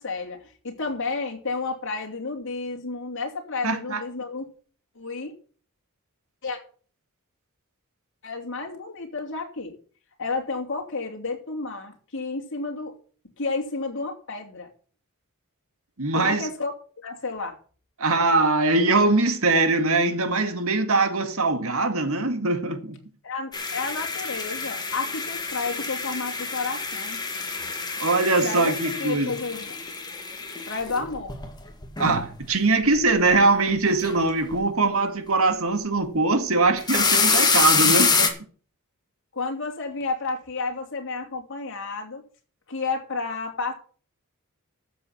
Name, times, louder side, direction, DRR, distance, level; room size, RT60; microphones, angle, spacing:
voice 1, 0.0-4.5 4.9-5.3 6.4-6.6 8.2-9.7 10.2-12.9 13.4-14.7 16.1-16.7 17.0-17.6 23.2-27.2 28.4-28.7 29.0-29.8 30.7-31.3 39.3-42.2 42.7-43.7, left 3 dB, 60° left, 3.0 m, -31 dB
voice 2, 3.6-4.0 16.0-16.5 18.0-23.0 28.0-29.3 32.0-38.3, right 3 dB, 65° right, 1.9 m, -22 dB
sound 1, 23.5-32.4 32.8-33.4 33.7-34.2 34.5-34.6 36.7-38.3, left 4 dB, 20° left, 2.0 m, -26 dB
13.5 x 7.4 x 5.9 m
head